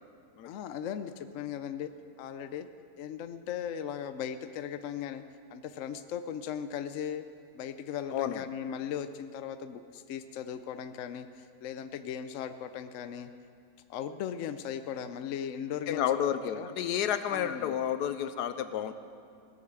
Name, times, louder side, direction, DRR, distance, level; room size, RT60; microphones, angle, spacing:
voice 1, 0.5-1.9 2.2-2.7 3.0-5.2 5.5-7.3 7.5-13.3 13.9-16.7 17.3-17.8, left 8 dB, 65° left, 10 dB, 0.8 m, -38 dB
voice 2, 8.1-8.4 15.9-18.9, left 9 dB, 85° left, 11 dB, 1.2 m, -31 dB
17.5 x 8.1 x 6.7 m, 2.3 s
omnidirectional pair, 1.7 m